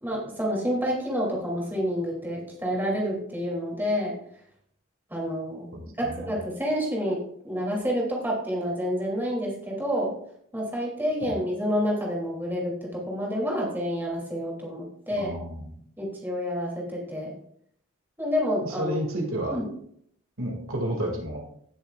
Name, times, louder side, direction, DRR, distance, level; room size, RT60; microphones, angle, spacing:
voice 1, 0.0-4.2 5.1-5.7 6.0-7.2 7.4-10.1 10.5-15.3 16.0-17.3 18.2-18.9 19.5-19.6, equal, 10° right, -3 dB, 2.7 m, -28 dB
voice 2, 5.7-6.3 11.2-11.4 15.1-15.7 18.6-19.6 20.4-21.4, right 1 dB, 75° right, 1 dB, 2.2 m, -31 dB
16.5 x 7.1 x 2.4 m, 0.68 s
head